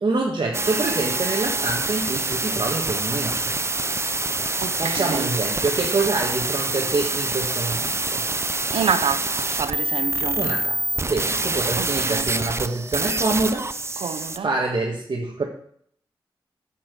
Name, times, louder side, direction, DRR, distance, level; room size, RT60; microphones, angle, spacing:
voice 1, 0.0-3.5 4.8-8.2 10.4-15.5, right 3 dB, 55° right, 1.6 m, -26 dB
sound 1, 0.5-14.4, right 2 dB, 30° right, 0.6 m, -26 dB
voice 2, 4.6-5.3 8.7-10.4 11.8-12.3 14.0-14.5, right 6 dB, 90° right, 0.8 m, -27 dB
8.8 x 7.6 x 6.2 m
cardioid pair, 45°, 9 cm